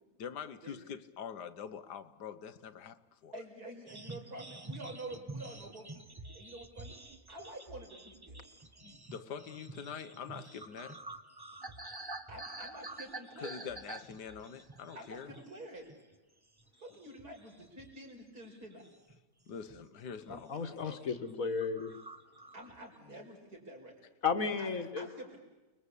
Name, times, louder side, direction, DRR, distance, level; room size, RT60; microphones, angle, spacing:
voice 1, 0.2-3.3 8.8-11.0 13.4-15.3 19.5-21.0, left 7 dB, 85° left, 1.7 m, -45 dB
voice 2, 3.3-6.0 6.3-7.0 7.3-8.4 11.7-11.8 12.3-13.7 14.9-15.9 16.8-18.9 22.5-23.9 24.6-24.7 25.0-25.4, right 1 dB, 70° right, 5.7 m, -48 dB
sound 1, 3.9-15.6 15.9-16.2 16.6-18.1 18.4-19.2 19.7-19.9 20.2-20.6 20.9-21.0 21.2-21.3 21.6-23.0, right 2 dB, 15° right, 1.1 m, -48 dB
voice 3, 20.3-21.9 24.2-25.1, left 5 dB, 60° left, 1.9 m, -34 dB
29.5 x 21.5 x 8.4 m
omnidirectional pair, 1.7 m